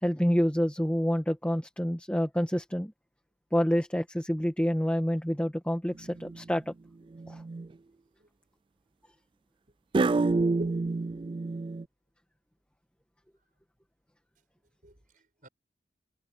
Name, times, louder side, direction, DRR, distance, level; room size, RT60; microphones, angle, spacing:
voice 1, 0.0-2.9 3.5-6.7 7.3-7.4, equal, 5° left, 1.6 m, -28 dB
sound 1, 6.0-6.5 7.1-7.7 9.9-11.8, right 3 dB, 30° right, 0.3 m, -28 dB
voice 2, 10.6-11.2 14.8-15.5, right 1 dB, 50° right, 6.1 m, -46 dB
head